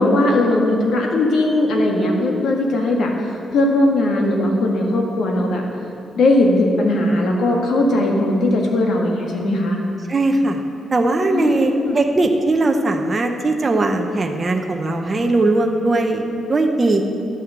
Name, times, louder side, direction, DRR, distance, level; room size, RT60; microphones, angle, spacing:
voice 1, 0.0-5.6 6.2-9.8 11.3-12.0, left 1 dB, 70° left, 1 dB, 1.7 m, -18 dB
voice 2, 10.1-10.6 10.9-17.0, right 2 dB, 25° right, 3 dB, 0.7 m, -19 dB
11.0 x 6.4 x 7.6 m, 2.7 s
cardioid pair, 140°, 0 cm